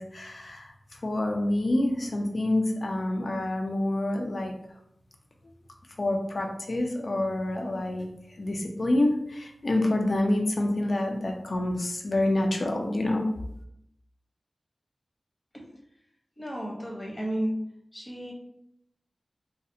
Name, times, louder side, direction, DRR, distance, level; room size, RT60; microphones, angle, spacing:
voice 1, 0.0-4.5 6.0-8.1 8.4-13.2, left 1 dB, 70° left, 2 dB, 0.4 m, -27 dB
voice 2, 16.4-17.6 17.9-18.3, equal, 35° left, -1 dB, 0.7 m, -32 dB
2.6 x 2.0 x 2.6 m, 0.79 s
cardioid pair, 45°, 0 cm